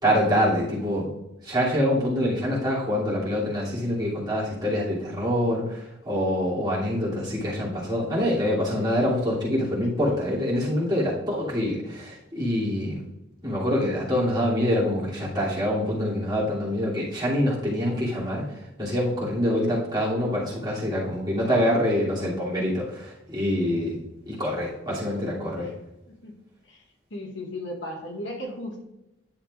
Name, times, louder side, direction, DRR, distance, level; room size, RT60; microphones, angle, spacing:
voice 1, 0.0-1.1 1.4-13.0 13.4-24.0 24.2-25.7, equal, 20° right, -7 dB, 2.8 m, -25 dB
voice 2, 27.1-28.8, left 1 dB, 65° left, -1 dB, 1.7 m, -35 dB
10.5 x 6.9 x 2.5 m, 0.91 s
head